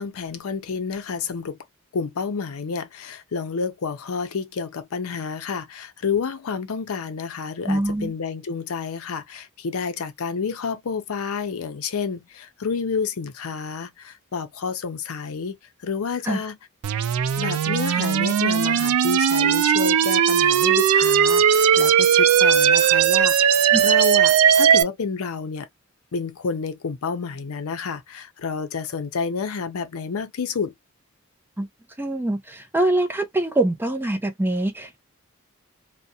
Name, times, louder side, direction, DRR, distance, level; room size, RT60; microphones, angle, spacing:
voice 1, 0.0-1.6 1.9-16.6 17.4-25.7 26.1-30.7, left 5 dB, 75° left, 0.5 m, -29 dB
voice 2, 7.6-8.1 16.2-16.4 23.7-23.8 31.6-31.7 32.0-35.0, right 1 dB, 10° right, 0.4 m, -24 dB
sound 1, 16.8-24.8, right 8 dB, 75° right, 0.3 m, -18 dB
2.4 x 2.1 x 2.6 m
head